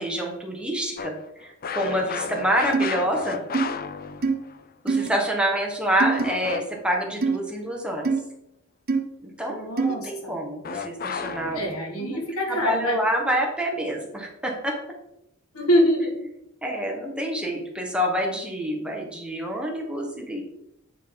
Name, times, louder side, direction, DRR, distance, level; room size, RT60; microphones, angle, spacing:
voice 1, 0.0-3.4 4.8-8.0 9.4-11.6 12.0-12.2 12.5-14.7 16.6-20.4, equal, 5° right, -1 dB, 1.4 m, -27 dB
sound 1, 1.0-4.6 6.2-6.9 10.6-11.8, left 6 dB, 45° left, 0.5 m, -33 dB
sound 2, 2.7-2.9 3.5-3.7 4.2-4.4 4.9-5.1 6.0-6.2 7.2-7.4 8.0-8.2 8.9-9.0 9.8-10.0, right 4 dB, 45° right, 0.8 m, -22 dB
voice 2, 9.5-10.3 11.5-13.0 15.5-16.3, equal, 90° left, 1 dB, 1.9 m, -24 dB
9.4 x 5.4 x 3.9 m, 0.83 s
head